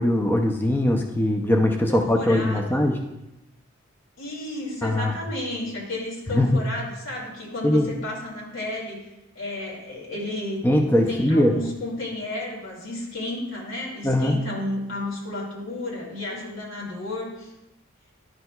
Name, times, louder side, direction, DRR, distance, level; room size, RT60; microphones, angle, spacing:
voice 1, 0.0-3.0 4.8-5.1 6.3-6.6 7.6-7.9 10.6-11.5 14.0-14.4, left 1 dB, 10° left, 2 dB, 0.4 m, -21 dB
voice 2, 1.9-2.9 4.2-9.0 9.3-17.5, left 1 dB, 85° left, -3 dB, 2.3 m, -32 dB
11.0 x 6.1 x 2.3 m, 0.93 s
head